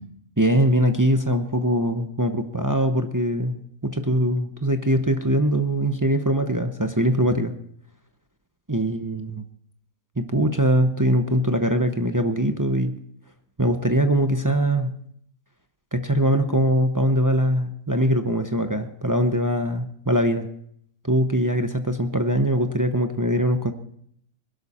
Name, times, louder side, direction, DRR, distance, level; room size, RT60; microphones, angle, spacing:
voice 1, 0.4-7.5 8.7-9.4 10.2-13.0 13.6-14.9 15.9-20.5 21.0-23.7, equal, 20° right, 7 dB, 0.5 m, -22 dB
21.0 x 12.0 x 4.3 m, 0.68 s
omnidirectional pair, 1.7 m